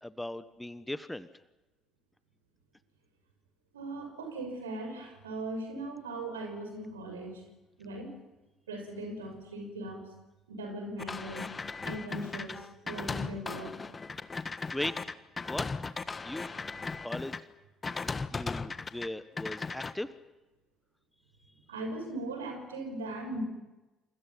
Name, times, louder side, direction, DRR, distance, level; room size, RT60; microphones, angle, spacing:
voice 1, 0.0-1.3 14.7-14.9 15.4-15.7 16.2-16.5 17.0-17.3 18.0-20.1, left 1 dB, 10° left, 14 dB, 1.4 m, -38 dB
voice 2, 3.7-7.4 7.8-8.2 8.7-10.0 10.5-11.5 11.8-13.8 16.7-16.8 21.7-23.4, right 1 dB, 80° right, 4 dB, 6.1 m, -39 dB
sound 1, 11.0-17.4 17.8-19.1 19.4-19.9, left 4 dB, 25° left, 1.4 m, -37 dB
28.5 x 28.0 x 5.8 m, 1.1 s
figure-of-eight pair, 50°, 0 cm